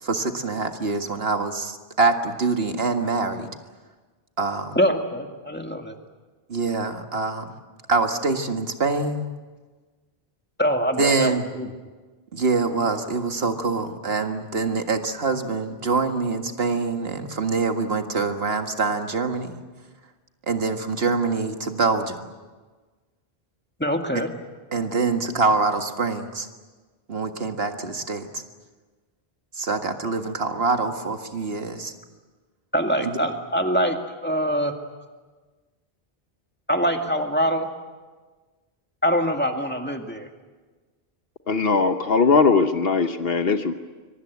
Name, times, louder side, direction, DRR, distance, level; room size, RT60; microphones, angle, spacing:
voice 1, 0.0-3.5 4.4-4.8 6.5-7.6 7.9-9.3 11.0-11.4 12.3-19.6 20.5-22.3 24.7-26.5 27.1-28.4 29.6-31.9 33.0-33.1, right 4 dB, 75° right, 6 dB, 2.0 m, -25 dB
voice 2, 4.8-5.9 10.6-11.7 23.8-24.3 32.7-34.0 34.2-34.7 36.7-37.7 39.0-40.3, equal, 10° left, 4 dB, 2.2 m, -24 dB
voice 3, 41.5-43.7, left 4 dB, 70° left, 8 dB, 1.2 m, -20 dB
25.0 x 23.5 x 8.2 m, 1.3 s
omnidirectional pair, 1.0 m